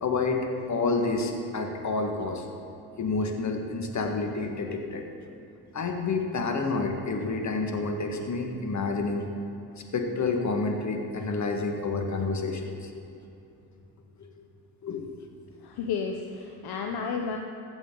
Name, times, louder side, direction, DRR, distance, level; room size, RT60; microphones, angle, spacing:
voice 1, 0.0-2.4 3.0-5.1 5.7-9.3 9.9-13.0 14.8-15.1, left 3 dB, 45° left, 3 dB, 1.7 m, -29 dB
voice 2, 15.6-17.4, left 5 dB, 65° left, 2 dB, 1.0 m, -32 dB
15.0 x 8.1 x 3.9 m, 2.9 s
supercardioid pair, 65°, 41 cm